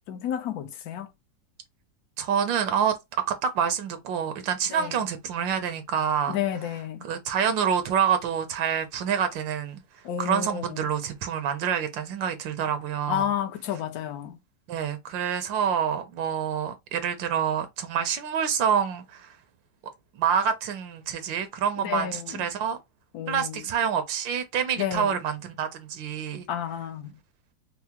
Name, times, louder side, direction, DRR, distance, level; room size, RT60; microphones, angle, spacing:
voice 1, 0.1-1.1 4.7-4.9 6.3-7.1 10.0-10.6 13.1-14.4 21.8-22.4 23.1-23.6 24.8-25.1 26.5-27.1, left 10 dB, 70° left, 0.9 m, -31 dB
voice 2, 2.2-6.4 7.0-9.8 10.2-13.3 14.7-19.4 20.1-22.8 23.3-26.5, right 8 dB, 80° right, 1.4 m, -27 dB
4.6 x 2.0 x 2.9 m
omnidirectional pair, 2.0 m